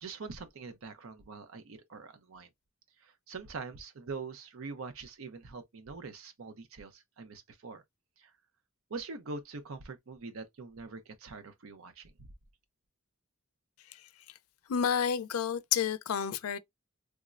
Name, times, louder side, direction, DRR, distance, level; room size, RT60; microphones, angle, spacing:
voice 1, 0.0-2.5 3.0-7.8 8.2-8.3 8.9-12.1, right 4 dB, 70° right, 0.6 m, -44 dB
voice 2, 14.7-16.6, left 7 dB, 90° left, 0.4 m, -30 dB
3.5 x 2.0 x 2.4 m
head